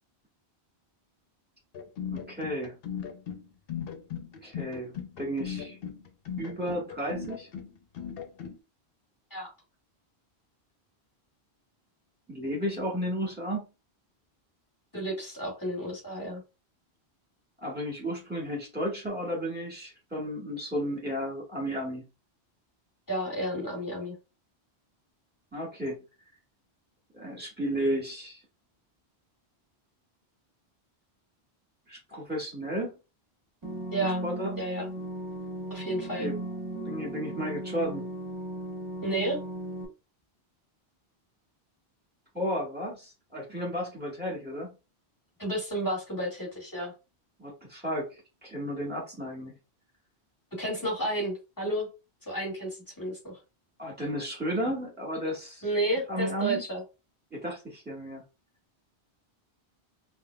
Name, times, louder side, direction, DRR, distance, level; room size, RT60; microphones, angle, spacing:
sound 1, 1.7-8.6, left 8 dB, 65° left, 0.8 m, -38 dB
voice 1, 2.1-2.8 4.4-5.8 6.4-7.5 12.3-13.6 17.6-22.1 25.5-26.0 27.1-28.4 31.9-33.0 34.0-34.5 36.2-36.4 36.8-38.1 42.3-44.7 47.4-49.5 53.8-55.6 56.1-56.6 57.3-58.2, equal, 10° right, 1.5 m, -33 dB
voice 2, 14.9-16.4 23.1-24.1 33.9-34.2 34.6-34.9 35.7-36.3 39.0-39.4 45.4-46.9 50.6-51.9 52.3-53.4 55.6-56.8, right 1 dB, 20° left, 2.1 m, -31 dB
sound 2, 33.6-39.9, right 1 dB, 25° right, 1.0 m, -36 dB
5.5 x 2.1 x 2.3 m
omnidirectional pair, 1.1 m